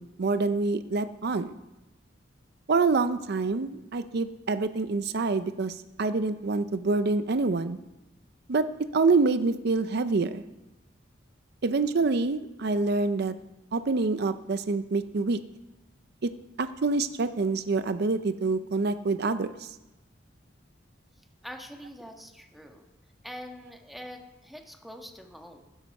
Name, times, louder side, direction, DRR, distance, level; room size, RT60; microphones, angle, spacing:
voice 1, 0.0-1.5 2.7-7.8 8.5-8.7 8.9-10.4 11.6-13.3 13.7-15.4 16.2-16.3 16.6-19.8, right 3 dB, 60° right, 11 dB, 0.5 m, -26 dB
voice 2, 21.4-22.9 23.2-25.6, equal, ahead, 3 dB, 1.4 m, -44 dB
15.5 x 12.0 x 5.4 m, 1.0 s
head